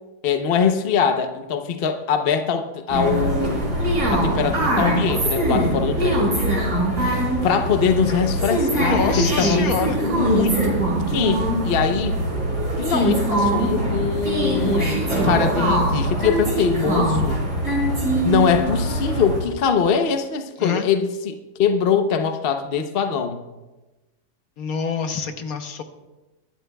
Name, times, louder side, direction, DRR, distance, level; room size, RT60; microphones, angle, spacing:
voice 1, 0.2-3.8 4.1-6.3 7.4-9.6 10.0-10.8 11.1-12.2 12.8-17.4 18.2-23.4, left 6 dB, 45° left, 7 dB, 0.8 m, -22 dB
sound 1, 2.9-19.4, right 1 dB, 60° right, 4.6 m, -22 dB
voice 2, 8.7-10.0 20.6-20.9 24.6-25.8, left 6 dB, 65° left, 7 dB, 1.3 m, -26 dB
23.5 x 12.0 x 2.3 m, 1.1 s
omnidirectional pair, 1.7 m